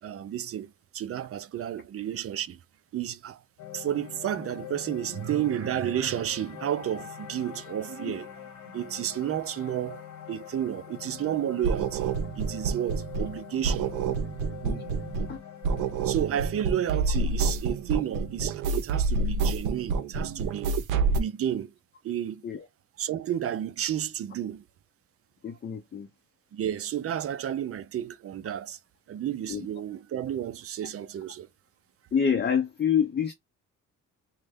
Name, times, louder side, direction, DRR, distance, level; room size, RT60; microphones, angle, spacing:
voice 1, 0.0-2.6 2.9-3.4 3.7-14.3 16.0-20.8 21.1-21.7 22.0-22.4 23.0-24.6 26.5-28.8 29.1-31.5, right 10 dB, 50° right, 0.5 m, -32 dB
sound 1, 3.6-19.8, left 10 dB, 80° left, 1.0 m, -44 dB
sound 2, 11.6-13.4 13.6-15.4 15.6-21.2, right 4 dB, 90° right, 0.6 m, -28 dB
voice 2, 14.6-15.0 15.3-15.4 22.4-22.6 25.4-26.1 29.5-29.7 32.1-33.3, left 7 dB, 35° left, 0.6 m, -27 dB
3.1 x 2.2 x 3.5 m
cardioid pair, 90°, 30 cm